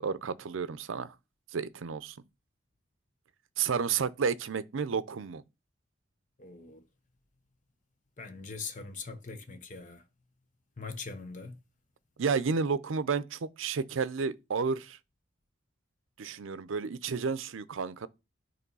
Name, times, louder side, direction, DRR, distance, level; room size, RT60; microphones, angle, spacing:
voice 1, 0.0-1.1 1.5-2.2 3.6-5.4 12.2-15.0 16.2-18.1, right 5 dB, 85° right, 0.5 m, -31 dB
voice 2, 6.4-6.8 8.2-10.0 10.8-11.6, left 4 dB, 40° left, 0.9 m, -42 dB
8.5 x 3.2 x 5.4 m
head